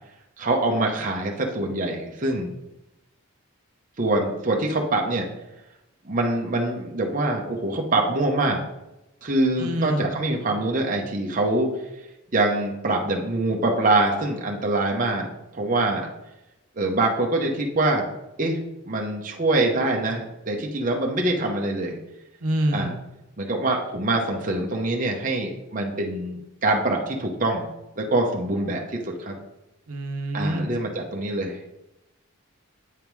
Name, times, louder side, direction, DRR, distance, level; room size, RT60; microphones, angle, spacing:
voice 1, 0.4-2.6 4.0-5.2 6.0-8.6 9.2-11.7 12.3-16.1 16.8-18.1 18.4-18.6 18.9-22.0 22.7-22.9 23.4-27.7 28.0-29.3 30.3-31.6, right 2 dB, 35° right, 0 dB, 0.8 m, -24 dB
voice 2, 9.6-10.1 22.4-23.0 29.9-30.6, right 1 dB, 85° right, 4 dB, 0.9 m, -26 dB
8.4 x 3.6 x 4.6 m, 0.92 s
head